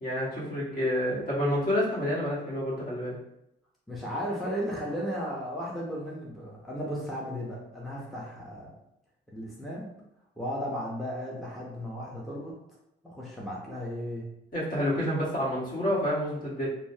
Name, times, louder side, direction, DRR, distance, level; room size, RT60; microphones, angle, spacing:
voice 1, 0.0-3.1 14.5-16.7, equal, 45° left, -6 dB, 1.3 m, -28 dB
voice 2, 3.9-8.7 9.3-9.9 10.4-12.6 13.0-14.3, equal, ahead, -5 dB, 0.6 m, -35 dB
2.8 x 2.1 x 2.7 m, 0.83 s
cardioid pair, 90°, 20 cm